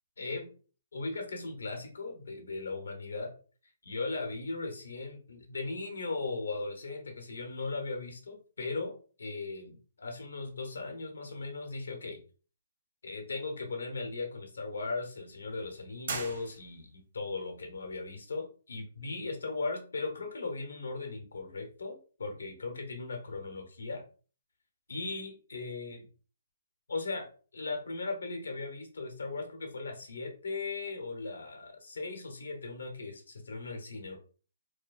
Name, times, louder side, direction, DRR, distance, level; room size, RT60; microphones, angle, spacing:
voice 1, 0.2-0.5 0.9-3.3 3.8-12.2 13.0-24.0 24.9-26.1 26.9-34.2, left 3 dB, 85° left, 3 dB, 1.0 m, -38 dB
sound 1, 16.0-17.1, right 4 dB, 55° right, 1.1 m, -39 dB
4.8 x 2.2 x 2.4 m, 0.39 s
hypercardioid pair, 150°, 0 cm